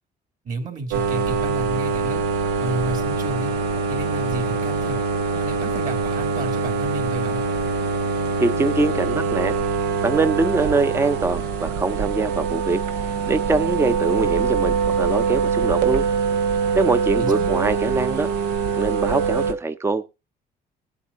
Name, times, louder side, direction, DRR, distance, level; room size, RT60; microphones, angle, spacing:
voice 1, 0.4-2.2 2.6-3.5 3.9-5.0 5.3-7.4 17.2-17.5, right 2 dB, 50° right, 2.9 m, -31 dB
sound 1, 0.9-19.5, right 5 dB, 90° right, 1.3 m, -23 dB
voice 2, 8.4-9.5 10.0-12.8 13.3-16.1 16.7-18.3 18.8-20.1, right 3 dB, 15° right, 0.7 m, -23 dB
21.5 x 8.4 x 2.7 m
cardioid pair, 110°, 17 cm